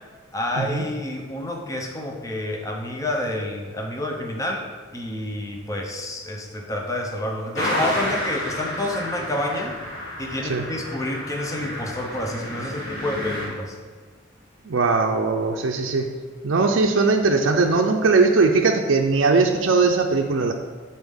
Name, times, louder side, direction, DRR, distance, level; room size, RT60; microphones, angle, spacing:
voice 1, 0.3-4.7 4.9-9.7 10.2-13.8, left 1 dB, 15° left, 1 dB, 0.6 m, -29 dB
sound 1, 7.5-13.5, equal, 80° left, 1.8 m, -30 dB
voice 2, 14.6-16.1 16.4-20.5, right 4 dB, 65° right, 2 dB, 0.5 m, -20 dB
7.9 x 4.1 x 3.5 m, 1.5 s
head